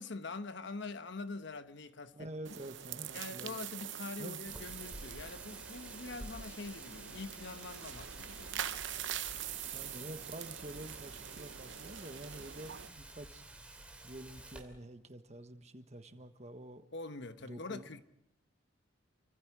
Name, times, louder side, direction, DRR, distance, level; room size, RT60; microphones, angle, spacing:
voice 1, 0.0-2.3 3.1-8.7 16.9-18.0, left 3 dB, 65° left, 1.1 m, -44 dB
voice 2, 2.1-3.6 4.2-4.6 9.7-13.4 14.0-16.9 17.4-18.0, right 1 dB, 35° right, 1.4 m, -48 dB
sound 1, 2.4-12.9, right 10 dB, 65° right, 0.9 m, -44 dB
Wind, 4.5-14.6, right 1 dB, 5° right, 2.8 m, -51 dB
29.0 x 24.5 x 4.9 m
head